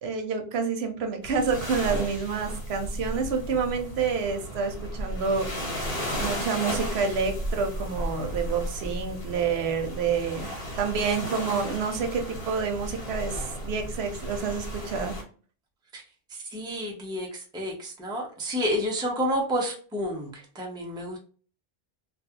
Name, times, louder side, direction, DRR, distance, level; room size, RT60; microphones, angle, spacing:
voice 1, 0.0-5.7 6.2-10.5 10.8-15.1, right 5 dB, 85° right, 5 dB, 0.9 m, -28 dB
sound 1, 1.2-15.2, equal, 80° left, 1.3 m, -34 dB
voice 2, 16.3-21.2, equal, 5° right, 0 dB, 0.4 m, -30 dB
2.3 x 2.3 x 2.7 m, 0.41 s
omnidirectional pair, 1.0 m